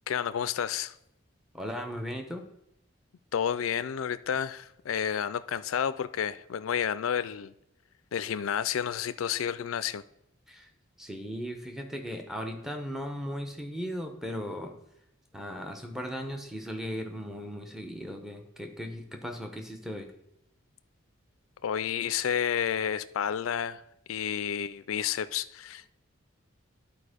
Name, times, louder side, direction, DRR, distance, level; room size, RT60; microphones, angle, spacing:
voice 1, 0.1-0.9 3.3-7.5 8.1-10.0 21.6-23.8 24.1-25.9, left 8 dB, 85° left, 0.4 m, -30 dB
voice 2, 1.5-2.5 10.5-10.7 11.0-14.8 15.3-20.1, equal, ahead, 0.8 m, -37 dB
10.5 x 4.4 x 5.0 m
head